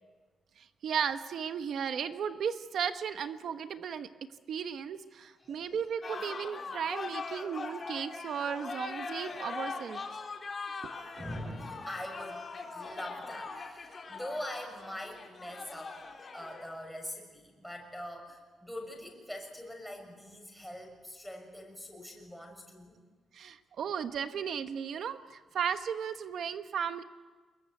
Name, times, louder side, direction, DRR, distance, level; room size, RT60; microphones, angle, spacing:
voice 1, 0.6-10.0 23.3-27.0, right 7 dB, 65° right, 9 dB, 1.1 m, -35 dB
sound 1, 6.0-16.7, left 4 dB, 35° left, 3.9 m, -41 dB
voice 2, 11.2-12.5 12.7-16.0 16.3-23.0, left 1 dB, ahead, 2 dB, 6.4 m, -43 dB
27.0 x 22.0 x 9.3 m, 1.4 s
cardioid pair, 135°, 0 cm